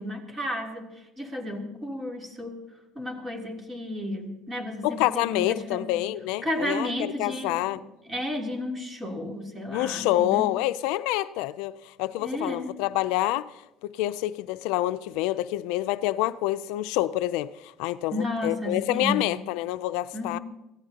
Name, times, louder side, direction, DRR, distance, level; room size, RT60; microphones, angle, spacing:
voice 1, 0.0-2.6 2.9-6.1 6.4-10.5 12.2-12.7 18.1-19.4 20.1-20.4, left 1 dB, 15° right, 3.1 m, -33 dB
voice 2, 4.8-6.9 7.2-7.8 9.7-11.7 12.0-13.5 14.0-18.1 18.4-20.4, left 15 dB, 85° left, 0.4 m, -27 dB
23.5 x 15.5 x 2.9 m
cardioid pair, 125°, 0 cm